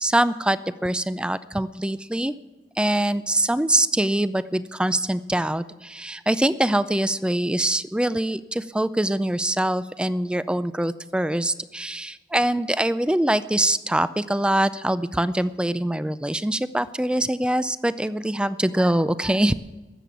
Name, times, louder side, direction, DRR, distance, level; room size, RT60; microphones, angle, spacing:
voice 1, 0.0-2.3 2.8-19.5, right 1 dB, 5° right, 15 dB, 0.3 m, -23 dB
19.0 x 7.7 x 7.1 m, 1.2 s
head